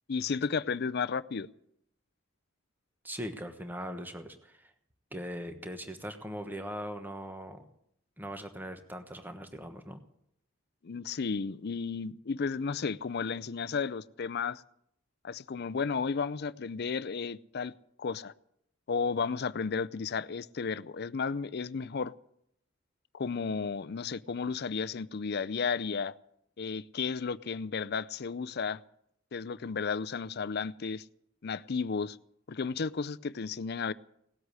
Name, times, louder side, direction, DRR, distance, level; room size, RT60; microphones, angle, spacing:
voice 1, 0.1-1.5 10.8-14.6 15.2-17.7 18.0-18.3 18.9-22.1 23.1-26.1 26.6-28.8 29.3-31.0 31.4-32.2 32.5-33.9, left 5 dB, 50° left, 0.5 m, -33 dB
voice 2, 3.0-4.7 5.1-7.6 8.2-10.0, equal, 10° right, 1.2 m, -40 dB
18.0 x 8.1 x 9.7 m
head